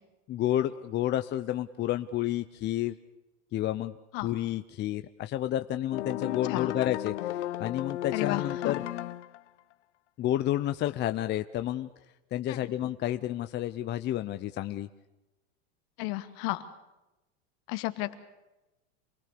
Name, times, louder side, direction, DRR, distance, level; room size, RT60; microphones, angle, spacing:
voice 1, 0.3-3.0 3.5-3.9 4.2-8.8 10.2-11.9 12.3-14.9, left 12 dB, 30° left, 10 dB, 0.7 m, -30 dB
sound 1, 5.9-9.4, left 13 dB, 90° left, 1.1 m, -34 dB
voice 2, 8.1-8.7 12.5-12.6 16.0-16.6 17.7-18.1, left 19 dB, 60° left, 9 dB, 2.2 m, -33 dB
28.0 x 19.5 x 6.8 m, 1.0 s
supercardioid pair, 140°, 34 cm